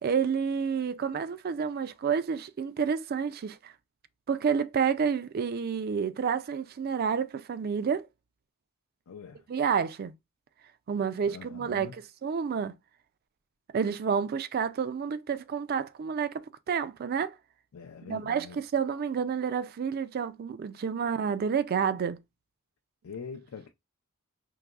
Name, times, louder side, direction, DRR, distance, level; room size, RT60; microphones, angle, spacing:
voice 1, 0.0-3.7 4.3-8.1 9.5-10.1 10.9-11.9 12.2-12.7 13.7-17.4 18.1-22.2, right 6 dB, 45° right, 0.3 m, -29 dB
voice 2, 9.1-9.5 11.2-12.0 17.7-18.6 23.0-23.7, left 6 dB, 75° left, 0.5 m, -43 dB
4.7 x 2.9 x 2.3 m
head